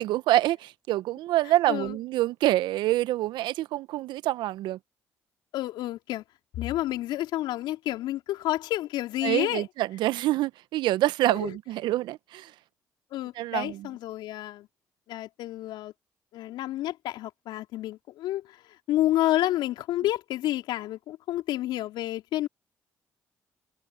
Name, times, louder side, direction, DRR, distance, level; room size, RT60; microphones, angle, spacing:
voice 1, 0.0-4.8 9.2-12.5 13.3-13.9, right 15 dB, 70° right, 1.1 m, -26 dB
voice 2, 5.5-6.2 6.6-9.6 11.3-11.5 13.1-14.7 15.1-15.9 16.3-18.6 18.9-22.5, left 14 dB, 70° left, 3.2 m, -29 dB
hypercardioid pair, 50°, 8 cm